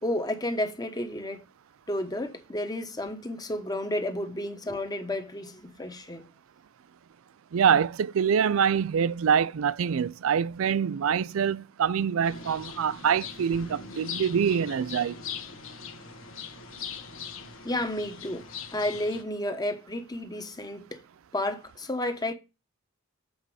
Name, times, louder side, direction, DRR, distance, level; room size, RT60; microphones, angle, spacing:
voice 1, 0.0-1.4 1.9-6.3 17.6-18.4 18.7-21.0 21.3-22.3, left 1 dB, 20° left, 1.1 m, -31 dB
voice 2, 7.5-15.2, right 7 dB, 75° right, 0.4 m, -25 dB
sound 1, 12.2-19.2, left 6 dB, 65° left, 1.3 m, -41 dB
8.1 x 4.8 x 4.8 m
head